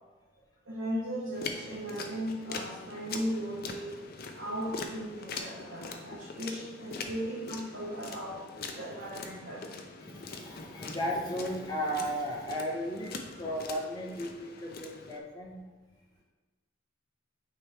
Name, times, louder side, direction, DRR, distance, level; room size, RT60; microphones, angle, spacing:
voice 1, 0.6-4.0 4.3-8.5 8.8-9.6, equal, 75° right, -6 dB, 1.2 m, -37 dB
Tunnel Falls footsteps raw, 1.3-15.2, left 4 dB, 50° left, 0.5 m, -43 dB
voice 2, 10.0-15.6, equal, 20° left, -2 dB, 1.0 m, -35 dB
8.7 x 3.3 x 3.3 m, 1.3 s
head